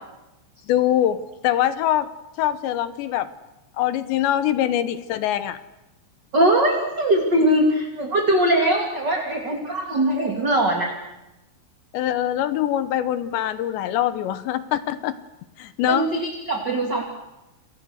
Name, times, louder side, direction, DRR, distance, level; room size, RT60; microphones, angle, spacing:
voice 1, 0.7-1.2 1.4-2.1 2.4-3.3 3.8-5.6 11.9-15.1 15.6-16.1, left 11 dB, 75° left, 13 dB, 3.0 m, -23 dB
voice 2, 6.3-10.9 15.9-17.0, right 1 dB, 30° right, 1 dB, 2.4 m, -21 dB
28.5 x 28.5 x 6.5 m, 1.0 s
omnidirectional pair, 5.7 m